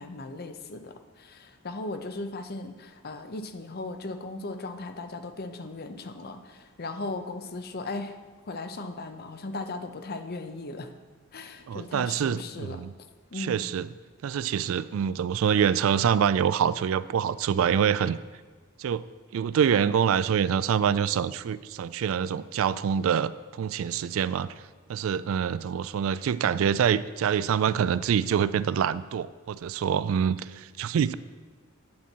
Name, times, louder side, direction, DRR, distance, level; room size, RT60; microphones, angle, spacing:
voice 1, 0.0-8.2 8.4-10.9 11.3-12.8 13.3-13.7, left 2 dB, 50° left, 8 dB, 0.7 m, -37 dB
voice 2, 11.7-12.9 13.3-13.9 14.2-18.2 18.8-19.0 19.3-24.5 24.9-31.1, right 8 dB, 70° right, 16 dB, 0.3 m, -25 dB
9.6 x 4.5 x 7.2 m, 1.4 s
head